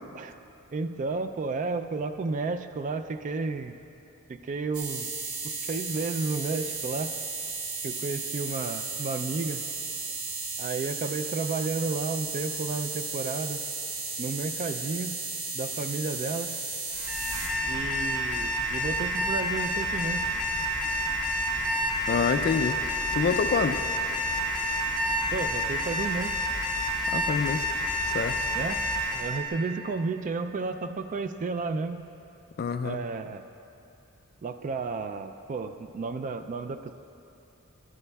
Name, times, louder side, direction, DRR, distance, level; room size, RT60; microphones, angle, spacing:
voice 1, 0.7-3.7 4.3-5.1 5.4-7.1 7.8-9.7 10.6-13.6 14.2-15.2 15.5-16.6 17.6-20.3 25.3-26.4 28.6-28.8 29.1-32.0 32.8-33.4 34.4-37.0, right 4 dB, 35° right, 9 dB, 0.3 m, -32 dB
sound 1, 4.7-17.5, right 4 dB, 85° right, 1.6 m, -34 dB
Alarm, 16.9-29.4, equal, 15° right, 1.5 m, -29 dB
voice 2, 22.1-22.8 23.1-23.8 27.1-27.7 28.1-28.4 32.6-33.0, left 5 dB, 45° left, 10 dB, 0.3 m, -26 dB
13.5 x 12.0 x 2.3 m, 2.9 s
head